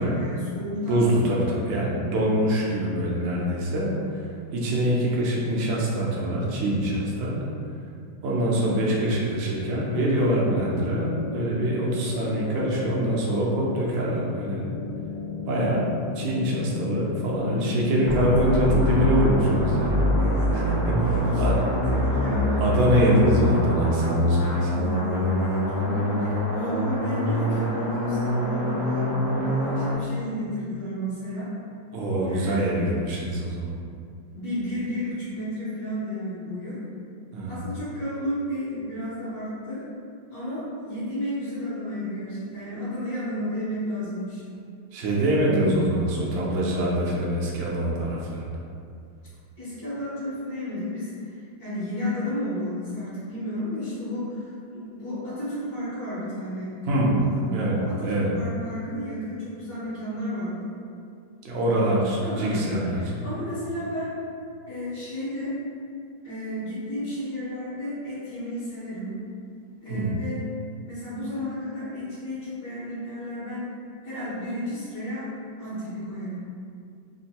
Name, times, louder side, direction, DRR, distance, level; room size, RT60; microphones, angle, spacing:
voice 1, 0.0-1.4 19.7-19.9 20.1-21.4 21.7-22.6 24.7-31.5 32.3-32.8 34.3-36.8 37.5-39.8 40.3-44.4 49.6-54.4 54.7-56.7 57.2-60.7 62.2-64.1 64.7-65.5 66.2-69.1 69.8-70.4 70.8-73.7 74.0-75.3 75.6-76.4, equal, 60° left, -12 dB, 1.7 m, -32 dB
voice 2, 0.9-3.9 4.5-7.4 8.2-14.6 15.5-15.9 16.1-20.1 20.5-21.6 22.6-24.7 31.9-33.7 37.3-37.5 44.9-48.6 56.9-57.2 57.5-58.3 61.4-63.2 69.9-70.1, right 1 dB, 65° right, -4 dB, 0.8 m, -24 dB
sound 1, 9.0-19.6, left 6 dB, 90° left, 1.6 m, -34 dB
sound 2, 18.0-29.9, equal, 90° right, 0.4 m, -24 dB
3.7 x 2.5 x 2.8 m, 2.3 s
omnidirectional pair, 2.0 m